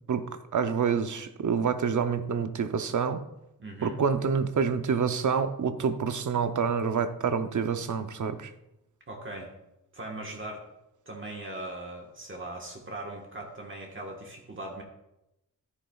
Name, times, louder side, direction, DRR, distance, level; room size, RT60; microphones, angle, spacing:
voice 1, 0.1-3.2 3.8-8.5, right 6 dB, 55° right, 9 dB, 0.7 m, -27 dB
voice 2, 3.6-4.0 9.1-9.5 9.9-10.6 11.0-14.8, right 1 dB, 35° right, 0 dB, 1.4 m, -39 dB
13.5 x 9.8 x 2.4 m, 0.90 s
wide cardioid pair, 160°, 36 cm